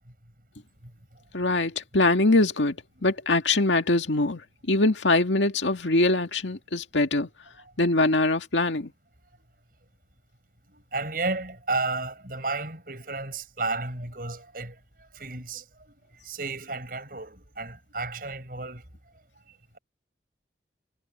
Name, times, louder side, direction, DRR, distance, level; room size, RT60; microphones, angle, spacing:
voice 1, 1.3-4.4 4.7-7.3 7.8-8.9, left 2 dB, 90° left, 2.1 m, -23 dB
voice 2, 10.7-18.8, right 3 dB, 50° right, 7.5 m, -33 dB
head